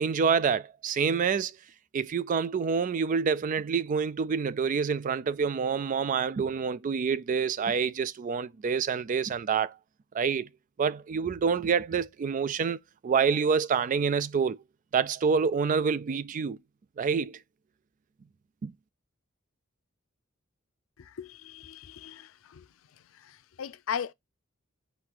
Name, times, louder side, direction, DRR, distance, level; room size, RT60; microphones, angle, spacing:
voice 1, 0.0-1.5 1.9-9.7 10.1-10.5 10.8-12.8 13.0-14.6 14.9-16.6 17.0-17.4 18.6-18.7, right 6 dB, 40° right, 0.3 m, -27 dB
voice 2, 21.0-22.7 23.2-24.1, left 7 dB, 85° left, 0.4 m, -38 dB
4.5 x 2.7 x 3.8 m
head